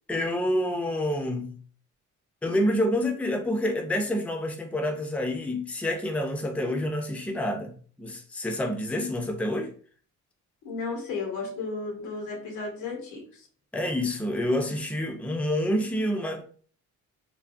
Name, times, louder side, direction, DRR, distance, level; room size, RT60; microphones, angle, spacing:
voice 1, 0.1-1.6 2.4-9.7 13.7-16.4, left 1 dB, 5° left, 0.5 m, -28 dB
voice 2, 10.6-13.5, left 4 dB, 90° left, 1.0 m, -34 dB
3.3 x 2.2 x 2.5 m
cardioid pair, 90°, 30 cm